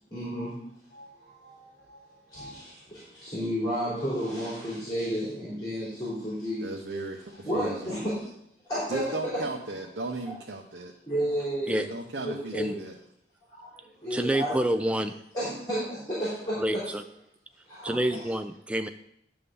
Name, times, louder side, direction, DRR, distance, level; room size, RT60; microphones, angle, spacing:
voice 1, 0.1-0.6 0.9-6.6 7.4-8.3 8.7-9.4 11.1-11.8 12.2-12.7 13.6-14.6 15.3-16.6 17.7-18.2, equal, 25° left, -9 dB, 3.5 m, -32 dB
voice 2, 6.6-8.0 8.9-10.9 11.7-12.9, right 2 dB, 80° right, 2 dB, 0.8 m, -36 dB
voice 3, 14.1-15.1 16.6-17.0 17.8-18.9, right 1 dB, 5° right, 7 dB, 0.3 m, -28 dB
11.0 x 3.8 x 6.9 m, 0.76 s
head